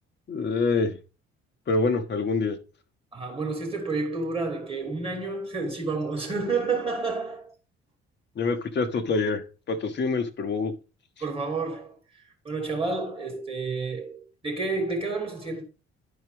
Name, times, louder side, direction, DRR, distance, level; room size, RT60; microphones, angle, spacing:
voice 1, 0.3-1.0 1.7-2.6 8.4-10.7, left 4 dB, 30° left, 1.0 m, -26 dB
voice 2, 3.1-7.5 11.2-12.0 12.4-15.6, right 3 dB, 15° right, 3.2 m, -30 dB
11.5 x 4.4 x 3.4 m
figure-of-eight pair, 50°, 34 cm